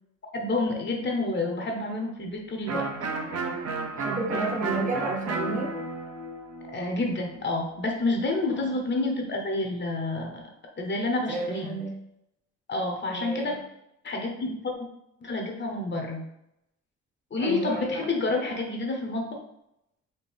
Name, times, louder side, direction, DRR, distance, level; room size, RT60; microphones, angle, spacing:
voice 1, 0.3-3.1 6.7-10.4 10.8-11.8 12.7-13.6 14.0-14.7 15.2-16.3 17.3-19.4, left 2 dB, 35° left, 2 dB, 0.9 m, -29 dB
Electric guitar, 2.7-8.3, right 3 dB, 55° right, 0.9 m, -33 dB
voice 2, 3.9-5.8 8.5-8.7 11.3-12.0 13.1-13.6 17.4-18.1, right 2 dB, 25° right, 0 dB, 1.0 m, -31 dB
4.4 x 2.6 x 3.5 m, 0.81 s
cardioid pair, 90°, 30 cm